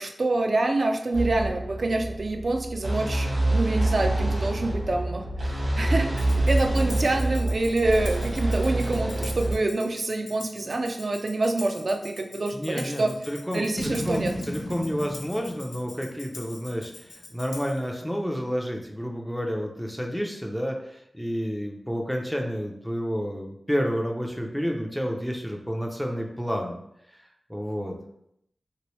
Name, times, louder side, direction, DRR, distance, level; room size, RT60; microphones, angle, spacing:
voice 1, 0.0-13.1 13.5-14.3, right 2 dB, 55° right, 4 dB, 0.4 m, -26 dB
sound 1, 1.1-9.5, right 2 dB, 90° right, 1.1 m, -26 dB
Tambourine, 6.2-17.9, left 3 dB, 85° left, 0.4 m, -45 dB
voice 2, 12.5-26.8 27.1-28.0, equal, ahead, 1 dB, 0.4 m, -30 dB
Boom, 13.8-17.1, equal, 70° left, 0.8 m, -35 dB
3.0 x 3.0 x 3.0 m, 0.76 s
wide cardioid pair, 70°, 0 cm